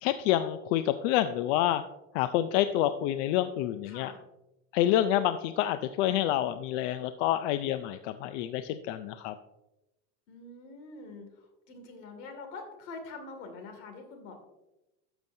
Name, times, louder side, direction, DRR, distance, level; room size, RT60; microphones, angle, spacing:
voice 1, 0.0-1.8 2.1-4.1 4.7-9.3, left 12 dB, 60° left, 11 dB, 0.5 m, -28 dB
voice 2, 3.8-4.2 10.3-14.4, left 3 dB, 80° left, 5 dB, 2.4 m, -45 dB
12.0 x 7.0 x 2.7 m, 0.95 s
cardioid pair, 170°, 40 cm